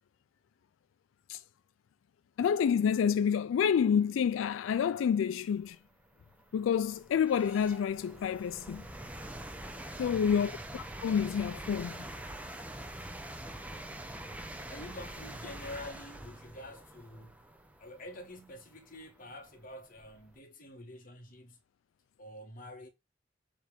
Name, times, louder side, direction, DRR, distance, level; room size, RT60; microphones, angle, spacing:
voice 1, 2.4-5.8 6.5-8.9 10.0-12.1, left 7 dB, 90° left, 0.3 m, -28 dB
sound 1, 4.9-5.0 5.6-20.3, right 1 dB, 10° right, 0.8 m, -45 dB
voice 2, 10.0-10.6 14.5-17.4 17.8-21.6 22.2-22.9, left 1 dB, 45° left, 1.8 m, -47 dB
7.4 x 3.3 x 5.1 m
head